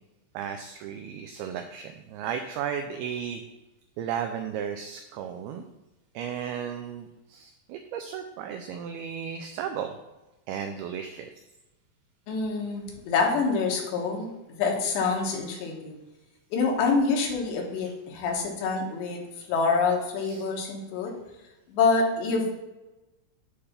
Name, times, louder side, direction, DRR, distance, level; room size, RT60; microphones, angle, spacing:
voice 1, 0.3-3.4 4.0-5.6 6.1-10.0 10.5-11.3 15.5-15.7 20.2-20.5, right 8 dB, 85° right, 6 dB, 2.2 m, -34 dB
voice 2, 12.3-14.3 14.6-16.0 16.5-19.2 19.5-21.1 21.7-22.6, left 4 dB, 80° left, 1 dB, 3.3 m, -26 dB
8.7 x 3.4 x 5.5 m, 1.0 s
omnidirectional pair, 4.9 m